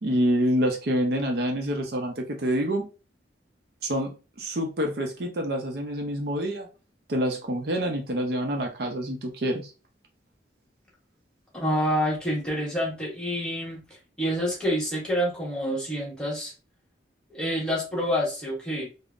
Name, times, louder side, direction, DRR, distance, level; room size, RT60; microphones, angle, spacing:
voice 1, 0.0-2.8 3.8-6.7 7.1-9.7, equal, 55° right, 2 dB, 0.5 m, -27 dB
voice 2, 11.5-13.8 14.2-16.5 17.3-18.9, equal, 5° left, -4 dB, 1.0 m, -27 dB
3.6 x 2.0 x 2.4 m, 0.32 s
head